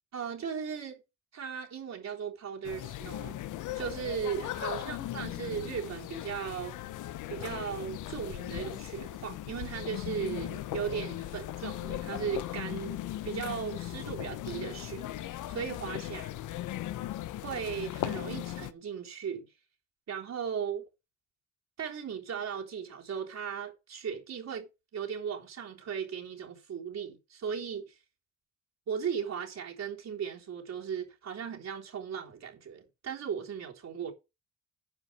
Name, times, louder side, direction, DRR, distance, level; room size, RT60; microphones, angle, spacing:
voice 1, 0.1-1.0 1.3-3.4 3.7-6.7 7.3-13.0 13.3-16.3 17.4-19.5 20.1-20.8 21.8-28.0 28.9-34.1, right 7 dB, 60° right, 3.6 m, -37 dB
sound 1, 2.6-18.7, left 14 dB, 80° left, 0.9 m, -38 dB
9.8 x 5.5 x 7.3 m
cardioid pair, 90°, 30 cm